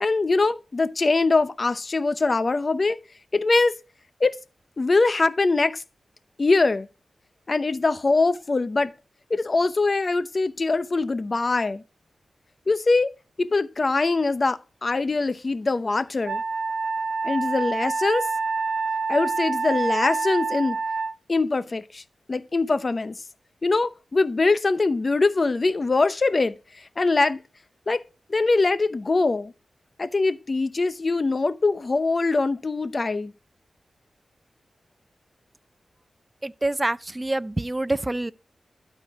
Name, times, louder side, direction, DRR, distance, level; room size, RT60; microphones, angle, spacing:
voice 1, 0.0-3.0 3.3-3.8 4.2-4.4 4.8-5.8 6.4-6.9 7.5-8.9 9.3-11.8 12.7-13.1 13.4-16.4 17.2-18.3 19.1-20.8 21.3-22.0 22.3-23.1 23.6-26.6 27.0-27.4 27.9-28.0 28.3-29.5 30.0-33.3, left 3 dB, 45° left, 0.8 m, -22 dB
Wind instrument woodwind instrument, 16.3-21.1, right 4 dB, 85° right, 0.8 m, -27 dB
voice 2, 36.4-38.3, right 2 dB, 20° right, 0.5 m, -26 dB
12.5 x 4.4 x 4.8 m
cardioid pair, 60°, 0 cm